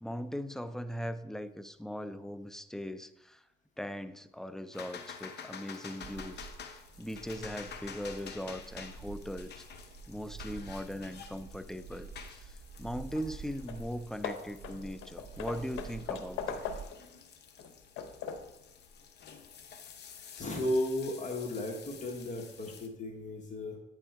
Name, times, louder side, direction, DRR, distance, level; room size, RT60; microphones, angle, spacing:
voice 1, 0.0-3.4 3.8-9.6 10.1-16.7, equal, ahead, 10 dB, 0.4 m, -40 dB
sound 1, 4.7-22.9, left 6 dB, 60° left, 0.8 m, -50 dB
sound 2, 6.0-16.9, right 4 dB, 50° right, 0.6 m, -49 dB
Hammer / Wood, 13.3-13.4 13.7-13.9 14.2-17.1 17.6-18.6, left 6 dB, 85° left, 0.7 m, -40 dB
voice 2, 20.3-23.8, left 1 dB, 40° left, 1 dB, 1.2 m, -34 dB
8.8 x 3.6 x 4.6 m, 0.88 s
cardioid pair, 90°, 20 cm